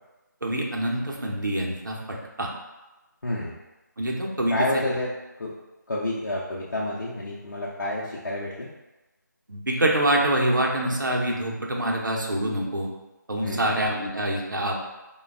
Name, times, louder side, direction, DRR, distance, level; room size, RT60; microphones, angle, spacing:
voice 1, 0.4-2.5 4.0-4.8 9.5-12.9 13.3-14.8, right 1 dB, 75° right, -1 dB, 0.7 m, -25 dB
voice 2, 3.2-3.5 4.5-5.1 5.4-5.5 5.9-8.7 13.4-13.8, left 1 dB, 65° left, -7 dB, 0.6 m, -29 dB
3.2 x 2.2 x 3.5 m, 1.1 s
figure-of-eight pair, 155°, 10 cm